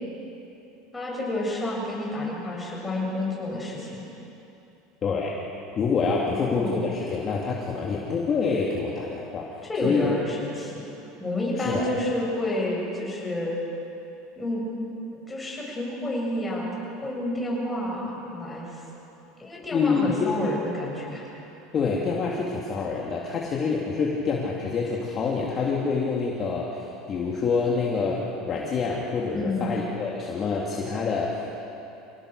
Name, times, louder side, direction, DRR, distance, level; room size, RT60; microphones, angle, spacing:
voice 1, 0.9-4.0 6.3-6.8 9.6-10.8 11.2-13.6 14.4-14.6 15.3-18.8 19.4-21.3 29.3-29.8, left 1 dB, 10° left, -3 dB, 7.2 m, -30 dB
voice 2, 5.0-5.4 5.7-9.5 9.8-10.1 11.6-11.9 19.7-20.3 21.7-31.5, left 4 dB, 35° left, -3 dB, 2.7 m, -26 dB
26.5 x 18.0 x 6.8 m, 3.0 s
supercardioid pair, 125°, 0 cm